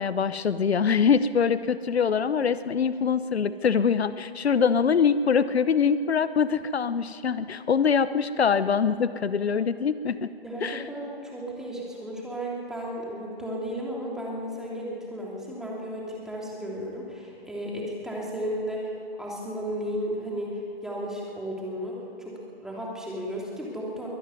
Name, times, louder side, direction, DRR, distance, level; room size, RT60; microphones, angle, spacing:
voice 1, 0.0-10.3 10.6-10.8, left 6 dB, 80° left, 14 dB, 0.9 m, -24 dB
voice 2, 10.4-18.9 19.2-24.1, equal, ahead, -4 dB, 3.2 m, -34 dB
23.0 x 13.0 x 9.6 m, 2.7 s
hypercardioid pair, 145°, 31 cm